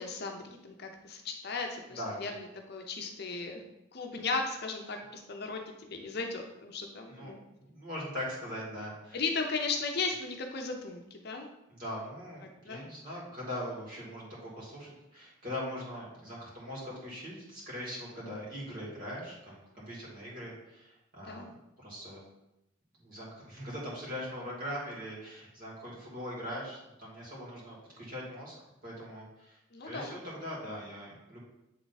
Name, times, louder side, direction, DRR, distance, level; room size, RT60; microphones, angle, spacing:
voice 1, 0.0-3.6 3.9-7.4 9.1-11.5 12.6-12.8 18.2-18.4 21.2-21.5 29.7-30.2, left 4 dB, 50° left, 3 dB, 0.7 m, -36 dB
voice 2, 1.9-2.3 7.1-7.3 7.6-9.2 11.7-21.5 21.8-22.2 23.0-28.5 28.8-29.6 29.8-31.4, equal, 45° right, -6 dB, 2.5 m, -41 dB
7.6 x 3.6 x 4.1 m, 0.87 s
head